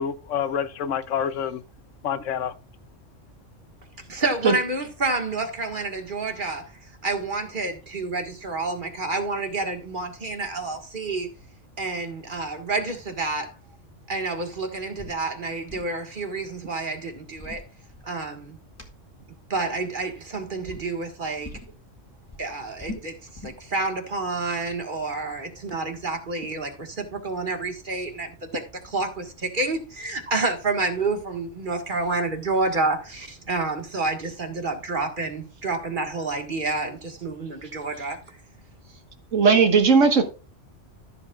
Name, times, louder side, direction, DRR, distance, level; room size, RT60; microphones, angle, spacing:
voice 1, 0.0-1.6 2.0-2.5, left 8 dB, 90° left, 1.1 m, -27 dB
voice 2, 4.1-6.6 7.0-11.3 11.8-13.5 14.1-17.6 18.0-18.6 19.5-21.5 22.4-23.2 23.4-38.2, right 3 dB, 45° right, 1.9 m, -29 dB
sound 1, 15.0-15.2 15.5-16.0 17.1-18.4 18.8-18.9 20.0-20.3 20.6-20.9 21.4-21.8 22.1-23.6, left 2 dB, 10° left, 2.0 m, -41 dB
voice 3, 39.3-40.2, right 5 dB, 90° right, 1.8 m, -17 dB
14.0 x 7.4 x 2.4 m
omnidirectional pair, 1.2 m